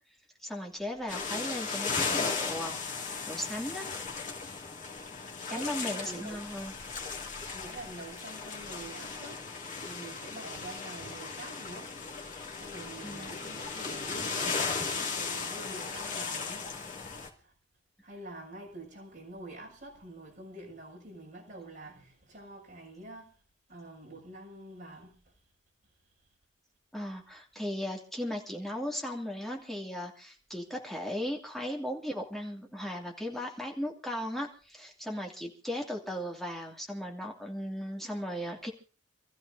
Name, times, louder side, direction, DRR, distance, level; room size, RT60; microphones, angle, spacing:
voice 1, 0.4-3.9 5.5-6.7 13.0-13.3 26.9-38.7, equal, ahead, 2.5 m, -37 dB
sound 1, 1.1-17.3, left 5 dB, 45° left, 2.6 m, -36 dB
voice 2, 5.5-6.4 7.5-9.5 9.8-11.9 12.6-16.6 18.0-23.3 23.7-25.1, right 2 dB, 45° right, 7.0 m, -46 dB
28.5 x 14.5 x 2.7 m
head